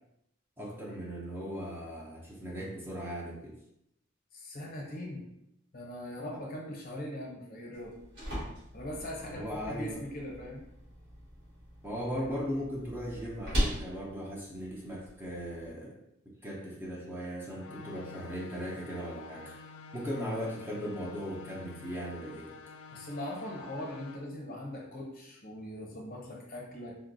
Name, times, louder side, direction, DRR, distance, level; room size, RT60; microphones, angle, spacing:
voice 1, 0.6-3.6 9.3-10.0 11.8-19.6 19.9-22.5, equal, 10° right, -4 dB, 0.5 m, -38 dB
voice 2, 4.3-5.2 5.7-8.0 8.7-10.6 22.9-27.0, left 1 dB, 45° left, -1 dB, 0.7 m, -40 dB
sound 1, 7.7-15.7, equal, 60° right, 1.3 m, -39 dB
sound 2, 17.6-24.2, left 4 dB, 70° left, 0.3 m, -49 dB
3.7 x 2.2 x 2.6 m, 0.79 s
head